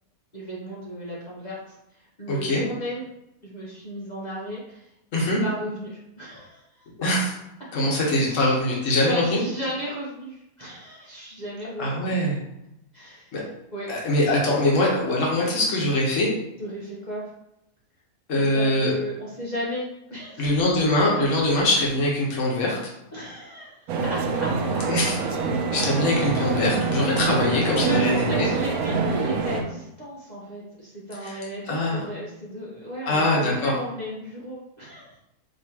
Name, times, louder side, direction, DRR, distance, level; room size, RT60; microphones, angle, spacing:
voice 1, 0.3-3.0 3.4-4.9 5.1-6.8 8.3-8.6 9.0-12.2 12.9-13.3 13.7-13.9 16.6-17.2 18.3-20.9 23.1-24.8 27.8-35.2, equal, 35° left, -7 dB, 0.9 m, -35 dB
voice 2, 2.3-2.6 5.1-5.4 7.0-7.3 7.7-9.4 11.8-12.4 13.3-13.4 13.9-16.3 18.3-18.9 20.4-22.8 24.9-25.1 25.7-28.5 31.2-31.4 31.7-32.0 33.1-33.7, left 1 dB, 55° left, -3 dB, 1.4 m, -23 dB
sound 1, 23.9-29.6, right 4 dB, 75° right, 1.1 m, -25 dB
5.2 x 3.0 x 2.8 m, 0.85 s
omnidirectional pair, 1.6 m